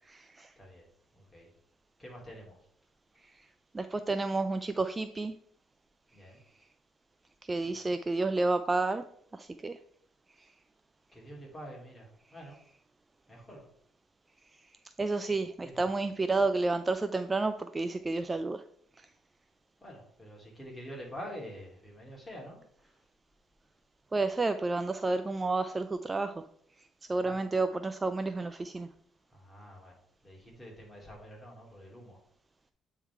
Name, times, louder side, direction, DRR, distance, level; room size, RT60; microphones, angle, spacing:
voice 1, 0.1-0.5 3.7-5.3 7.5-9.0 9.3-9.8 15.0-18.6 24.1-26.3 27.1-28.9, right 3 dB, 20° right, 10 dB, 0.3 m, -30 dB
voice 2, 2.0-2.6 6.1-6.4 7.6-7.7 11.1-12.6 13.3-13.6 15.6-15.8 19.8-22.6 27.2-27.3 29.3-29.9 30.2-32.2, equal, 10° left, -2 dB, 2.7 m, -46 dB
8.4 x 3.7 x 4.6 m, 0.64 s
cardioid pair, 115°, 0 cm